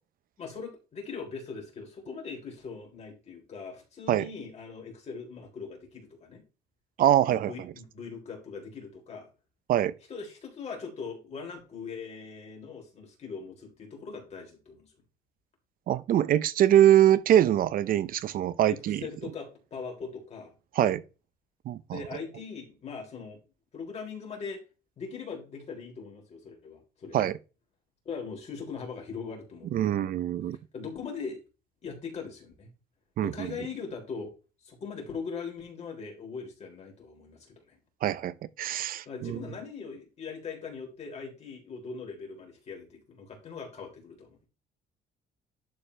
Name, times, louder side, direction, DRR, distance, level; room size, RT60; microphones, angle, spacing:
voice 1, 0.4-6.4 7.1-9.3 10.1-14.9 18.6-20.5 20.8-20.9 21.9-23.4 23.7-24.6 25.0-27.3 28.1-29.9 30.7-31.4 31.8-32.7 33.2-34.3 34.6-37.8 39.1-44.5, left 5 dB, 40° left, 3.8 m, -40 dB
voice 2, 7.0-7.5 9.7-9.9 15.9-19.0 20.8-21.0 21.7-22.0 27.1-27.3 29.7-30.6 33.2-33.5 38.0-39.4, right 11 dB, 55° right, 0.6 m, -23 dB
11.5 x 4.4 x 3.3 m
cardioid pair, 110°, 17 cm